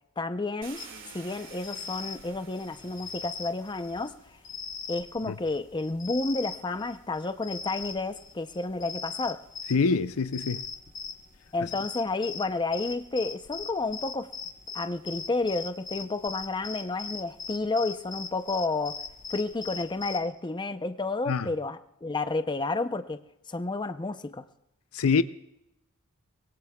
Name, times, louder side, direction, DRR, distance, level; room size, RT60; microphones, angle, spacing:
voice 1, 0.2-0.8 1.1-4.1 4.9-9.4 11.5-14.3 14.7-19.0 19.3-23.2 23.5-24.4, left 3 dB, 20° left, 0.6 m, -31 dB
Car, 0.6-4.7 5.7-5.8 6.3-9.6, right 5 dB, 60° right, 2.8 m, -52 dB
sound 1, 0.8-20.2, left 5 dB, 35° left, 1.0 m, -40 dB
voice 2, 9.7-10.6 21.3-21.5 24.9-25.2, left 5 dB, 70° left, 0.5 m, -24 dB
24.0 x 21.0 x 2.3 m
head